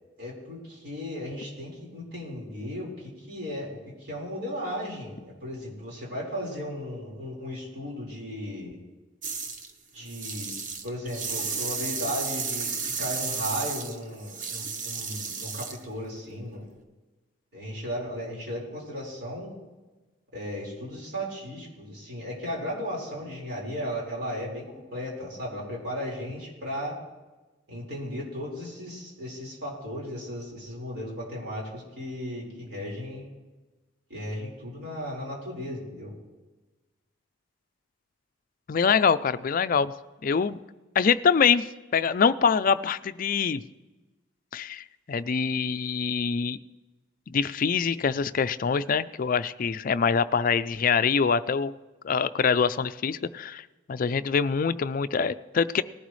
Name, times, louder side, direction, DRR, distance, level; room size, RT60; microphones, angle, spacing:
voice 1, 0.2-3.7 4.0-8.7 9.9-10.5 10.8-16.6 17.5-19.5 20.3-24.6 24.9-27.0 27.7-33.3 34.1-36.1, equal, 60° right, -3 dB, 4.7 m, -35 dB
sound 1, 9.2-9.7 10.0-15.8, right 5 dB, 40° right, 1.0 m, -33 dB
voice 2, 38.7-39.9 40.2-40.6 41.0-41.7 41.9-43.6 44.5-44.8 45.1-46.6 47.3-51.7 52.0-55.8, left 6 dB, 45° left, 14 dB, 0.4 m, -24 dB
19.0 x 12.0 x 3.2 m, 1.2 s
head